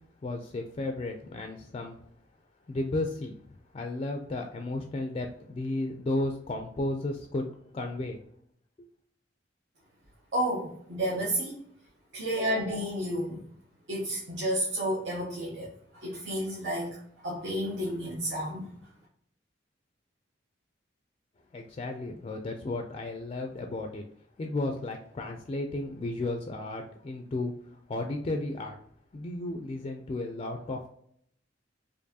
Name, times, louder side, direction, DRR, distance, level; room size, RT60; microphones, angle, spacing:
voice 1, 0.2-2.0 2.7-3.3 3.7-7.5 7.7-8.2 21.5-24.1 24.4-28.8 29.1-30.9, left 2 dB, 30° left, 4 dB, 0.3 m, -33 dB
voice 2, 10.3-11.6 12.1-13.4 13.9-18.7, equal, 70° right, -5 dB, 0.9 m, -31 dB
4.4 x 2.6 x 2.8 m, 0.68 s
head